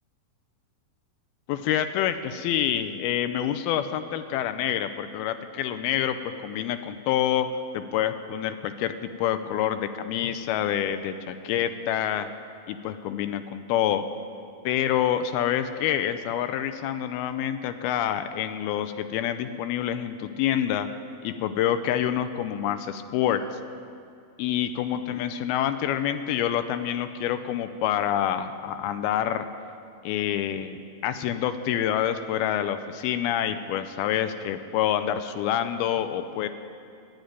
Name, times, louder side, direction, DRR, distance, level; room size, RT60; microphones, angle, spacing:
voice 1, 1.5-6.2 6.4-12.3 12.7-14.0 14.7-20.9 21.2-23.4 24.4-29.5 30.0-36.5, left 10 dB, 80° left, 10 dB, 2.4 m, -27 dB
11.5 x 10.5 x 9.5 m, 2.4 s
omnidirectional pair, 4.6 m